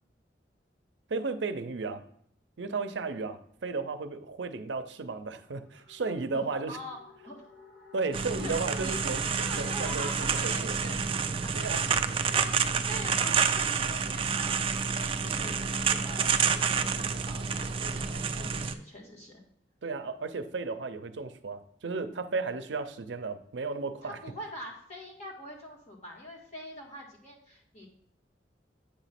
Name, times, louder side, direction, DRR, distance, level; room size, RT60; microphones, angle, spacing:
voice 1, 1.1-2.0 2.6-6.8 7.9-9.2 9.6-10.8 11.6-11.8 19.8-24.2, right 4 dB, 85° right, 10 dB, 0.6 m, -34 dB
sound 1, 5.0-10.7, left 1 dB, 60° left, 1.0 m, -51 dB
sound 2, 8.1-18.7, right 6 dB, 30° right, 0.4 m, -29 dB
voice 2, 8.2-11.0 11.4-14.6 15.0-19.4 24.0-27.9, left 1 dB, 40° left, -3 dB, 1.9 m, -44 dB
8.4 x 3.0 x 5.8 m, 0.68 s
head